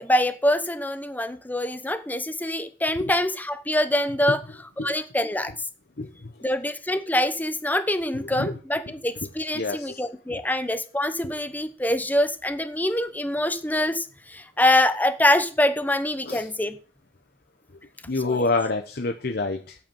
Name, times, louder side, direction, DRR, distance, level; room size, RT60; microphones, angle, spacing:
voice 1, 0.0-4.4 4.8-5.5 6.4-16.8 18.2-18.5, left 1 dB, 10° left, 10 dB, 1.0 m, -25 dB
voice 2, 6.0-6.3 8.1-8.5 9.5-10.0 10.3-10.4 16.3-16.5 18.1-19.8, left 3 dB, 60° left, 5 dB, 1.0 m, -27 dB
8.4 x 8.2 x 7.0 m, 0.39 s
head